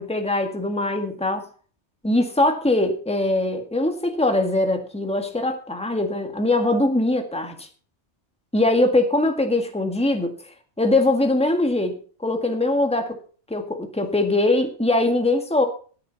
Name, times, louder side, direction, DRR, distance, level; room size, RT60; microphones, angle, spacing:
voice 1, 0.0-1.5 2.0-7.7 8.5-10.3 10.8-13.1 13.5-15.7, left 2 dB, 5° left, 1.9 m, -22 dB
16.0 x 9.6 x 4.2 m
omnidirectional pair, 1.2 m